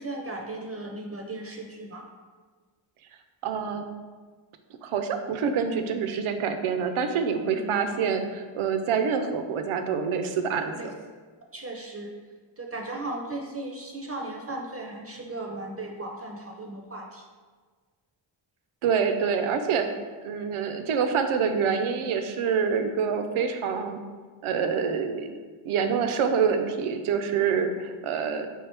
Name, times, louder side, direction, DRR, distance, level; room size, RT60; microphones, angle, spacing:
voice 1, 0.0-2.0 7.4-7.8 10.7-10.9 11.5-12.1 12.6-17.2, right 2 dB, 30° right, 1 dB, 0.5 m, -36 dB
voice 2, 3.4-3.8 4.8-10.9 18.8-19.9 20.2-24.0 24.4-25.4 25.6-28.5, right 6 dB, 80° right, 7 dB, 0.6 m, -26 dB
4.7 x 3.1 x 3.3 m, 1.5 s
cardioid pair, 80°, 49 cm